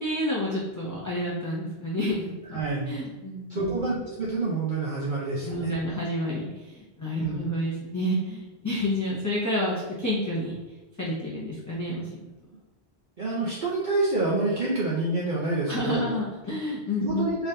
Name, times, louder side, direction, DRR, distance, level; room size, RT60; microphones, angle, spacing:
voice 1, 0.0-2.6 2.9-3.9 5.4-10.5 11.0-12.3 15.7-17.3, left 1 dB, 25° left, -6 dB, 0.5 m, -29 dB
voice 2, 2.5-2.9 3.5-5.7 7.2-7.4 13.2-16.0 17.0-17.5, right 2 dB, 50° right, -6 dB, 0.8 m, -27 dB
3.8 x 3.3 x 2.7 m, 1.1 s
omnidirectional pair, 1.1 m